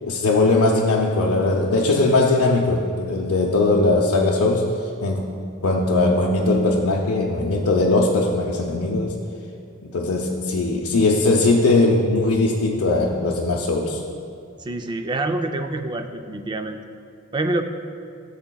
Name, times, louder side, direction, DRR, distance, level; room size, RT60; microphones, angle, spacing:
voice 1, 0.0-4.7 5.0-5.2 5.6-9.1 9.8-14.0, left 2 dB, 80° left, -3 dB, 0.6 m, -19 dB
voice 2, 14.6-16.8 17.3-17.6, right 2 dB, 20° right, 6 dB, 0.3 m, -26 dB
12.5 x 7.0 x 2.3 m, 2.6 s
head